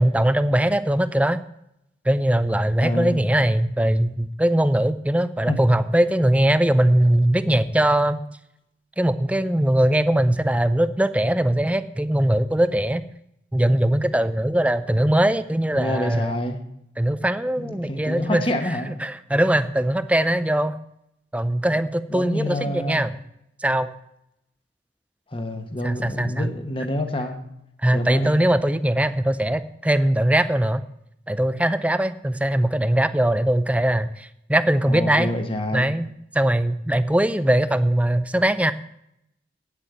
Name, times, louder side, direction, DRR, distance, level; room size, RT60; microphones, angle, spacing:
voice 1, 0.0-1.4 2.1-8.2 9.0-13.0 13.5-16.3 17.0-18.4 19.0-20.7 21.3-23.1 23.6-23.9 25.8-26.5 27.8-30.8 31.3-35.3 35.7-36.1 36.3-38.7, right 1 dB, 5° right, 13 dB, 0.5 m, -21 dB
voice 2, 2.8-3.2 5.5-5.7 15.7-16.6 17.6-18.9 22.1-23.1 25.3-27.4 27.9-28.5 34.9-35.9, left 1 dB, 30° left, 5 dB, 1.2 m, -27 dB
9.1 x 8.4 x 8.0 m, 0.80 s
head